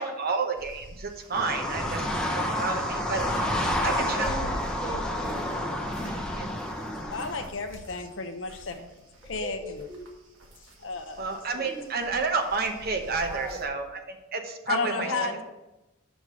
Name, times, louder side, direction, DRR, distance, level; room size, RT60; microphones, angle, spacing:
voice 1, 0.0-3.3 3.8-4.3 6.4-6.5 8.8-8.9 11.2-15.4, right 4 dB, 50° right, 5 dB, 0.8 m, -30 dB
sound 1, 0.6-8.7 9.1-13.6, equal, 85° right, 1.4 m, -43 dB
sound 2, 1.3-7.5, left 1 dB, 5° left, 0.8 m, -30 dB
voice 2, 2.4-2.8 3.2-6.2 6.6-7.5 9.2-10.1 11.4-11.9 13.2-13.7 14.7-15.4, right 1 dB, 15° right, 0 dB, 1.4 m, -39 dB
voice 3, 7.1-8.8 9.3-9.6 10.8-11.2 14.7-15.4, left 4 dB, 70° left, 7 dB, 0.8 m, -32 dB
6.1 x 5.3 x 6.2 m, 0.98 s
head